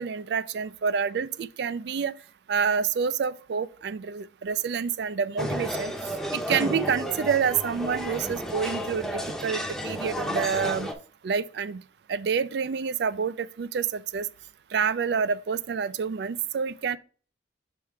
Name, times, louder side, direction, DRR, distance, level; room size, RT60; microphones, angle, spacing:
voice 1, 0.0-2.1 2.5-5.9 6.3-10.9 11.2-11.8 12.1-14.3 14.7-17.0, right 6 dB, 65° right, 0.3 m, -28 dB
sound 1, 5.4-10.9, equal, ahead, 0.6 m, -32 dB
6.5 x 3.5 x 4.5 m
head